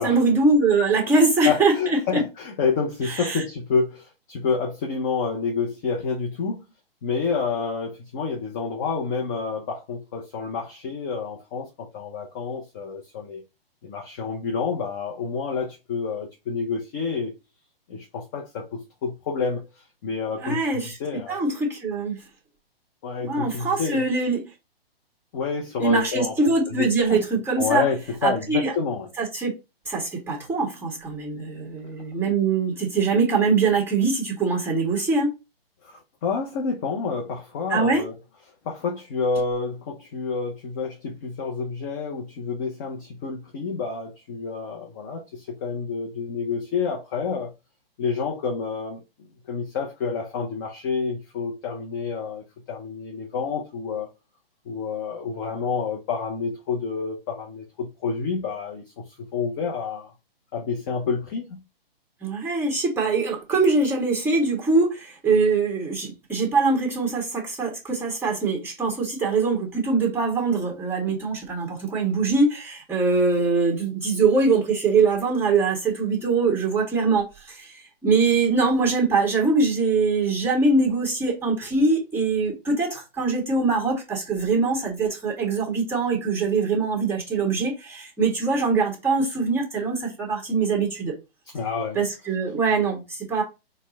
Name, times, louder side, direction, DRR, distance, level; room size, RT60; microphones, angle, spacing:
voice 1, 0.0-2.2 3.1-3.4 20.4-21.0 21.3-22.2 23.2-24.4 25.8-27.8 28.2-28.7 29.2-29.5 29.9-35.3 37.7-38.0 62.2-91.1 91.9-93.4, right 4 dB, 5° right, 1.3 m, -23 dB
voice 2, 1.0-6.6 7.0-13.4 13.8-17.3 17.9-21.4 23.0-24.1 25.3-26.4 26.7-27.3 27.6-29.1 35.8-38.1 38.6-47.5 48.0-49.0 49.5-54.1 54.7-60.1 60.5-61.6 91.5-92.0, left 5 dB, 20° left, 0.4 m, -29 dB
4.3 x 2.1 x 3.9 m
hypercardioid pair, 135°, 30 cm